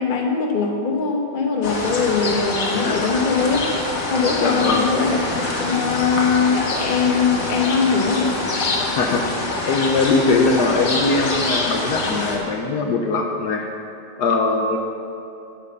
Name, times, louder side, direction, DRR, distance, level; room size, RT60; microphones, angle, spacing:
voice 1, 0.0-3.6 4.1-5.1 5.6-8.3, left 5 dB, 35° left, 1 dB, 0.9 m, -21 dB
sound 1, 1.6-12.4, left 2 dB, 50° left, 1.6 m, -25 dB
voice 2, 4.4-4.9 8.8-9.2 9.7-13.7 14.2-14.8, left 3 dB, 70° left, 3 dB, 1.2 m, -21 dB
8.9 x 7.7 x 5.4 m, 2.7 s
omnidirectional pair, 2.0 m